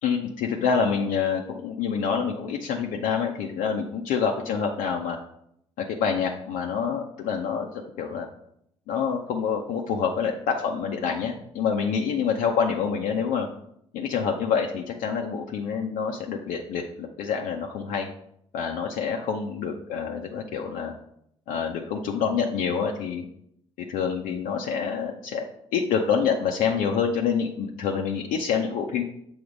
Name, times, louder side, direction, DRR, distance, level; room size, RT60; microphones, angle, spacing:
voice 1, 0.0-5.2 5.8-8.3 8.9-13.5 13.9-18.1 18.5-20.9 21.5-23.2 23.8-25.4 25.7-29.0, left 6 dB, 60° left, 1 dB, 0.6 m, -27 dB
7.0 x 2.8 x 5.1 m, 0.73 s
hypercardioid pair, 55°, 16 cm